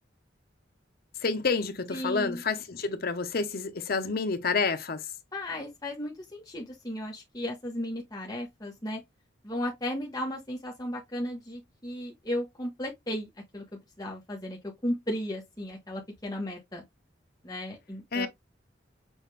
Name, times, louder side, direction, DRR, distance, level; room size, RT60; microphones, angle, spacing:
voice 1, 1.2-5.0 18.1-18.3, left 4 dB, 55° left, 0.8 m, -29 dB
voice 2, 1.9-2.4 5.3-9.0 9.4-16.8 17.4-18.3, left 1 dB, 20° left, 1.1 m, -35 dB
6.2 x 2.5 x 3.3 m
head